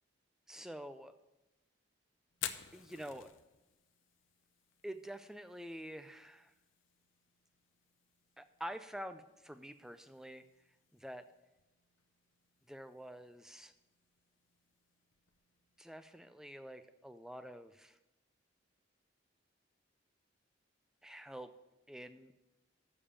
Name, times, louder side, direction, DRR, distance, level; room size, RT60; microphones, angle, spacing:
voice 1, 0.5-1.1 2.7-3.3 4.8-6.5 8.4-10.4 10.9-11.3 12.7-13.7 15.8-18.0 21.0-21.5 21.9-22.3, equal, 5° right, 10 dB, 0.4 m, -47 dB
Fire, 2.3-16.2, left 10 dB, 85° left, 0.7 m, -53 dB
7.0 x 6.8 x 7.4 m, 1.0 s
head